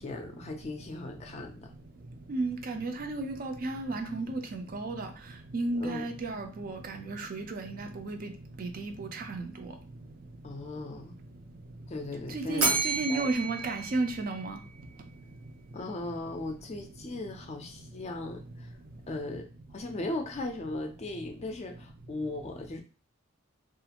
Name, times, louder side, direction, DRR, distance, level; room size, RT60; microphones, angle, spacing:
voice 1, 0.0-1.7 5.8-6.1 10.4-11.1 11.9-12.8 13.1-13.5 15.7-18.7 19.1-19.5 19.7-22.8, left 2 dB, 35° left, 0.4 m, -37 dB
voice 2, 2.3-5.1 5.5-8.3 8.6-9.5 12.3-14.6, right 2 dB, 45° right, 0.4 m, -33 dB
Bell, 12.6-14.9, right 3 dB, 85° right, 1.1 m, -31 dB
2.4 x 2.4 x 2.8 m
head